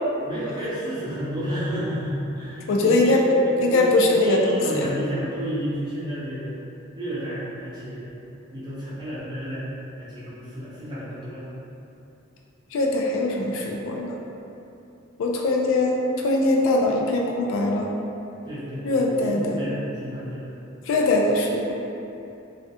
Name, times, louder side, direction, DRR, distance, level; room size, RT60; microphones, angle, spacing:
voice 1, 0.2-3.2 3.4-6.5 6.9-8.2 8.5-9.6 10.0-11.4 18.4-20.5, equal, 20° right, -11 dB, 0.7 m, -31 dB
voice 2, 2.7-3.3 3.6-4.9 12.7-14.2 15.2-17.9 18.8-19.6 20.9-21.7, left 2 dB, 85° left, 0 dB, 0.3 m, -21 dB
2.3 x 2.1 x 2.7 m, 2.8 s
head